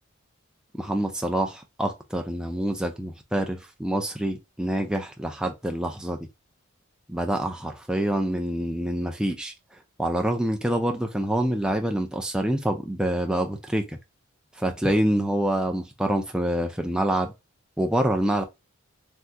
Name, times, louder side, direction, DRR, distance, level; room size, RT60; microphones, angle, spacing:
voice 1, 0.8-6.2 7.1-9.5 10.0-14.0 14.6-17.3 17.8-18.4, right 1 dB, 5° right, 0.3 m, -26 dB
3.4 x 2.7 x 2.2 m
head